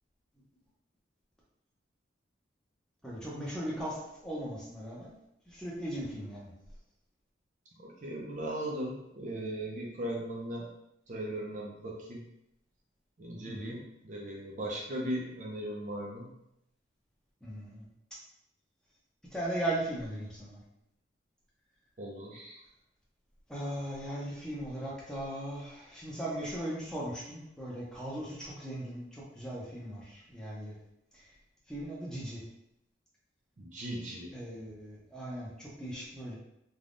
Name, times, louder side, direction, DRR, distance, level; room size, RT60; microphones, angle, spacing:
voice 1, 3.0-5.1 5.5-6.5 13.4-13.7 17.4-17.9 19.3-20.6 23.5-30.8 31.1-31.3 31.7-32.4 34.3-36.4, right 1 dB, 5° left, -6 dB, 0.6 m, -38 dB
voice 2, 7.8-10.7 11.1-12.2 13.2-16.3 22.0-22.6 33.6-34.3, right 1 dB, 40° right, -2 dB, 0.5 m, -38 dB
3.3 x 2.2 x 2.5 m, 0.79 s
head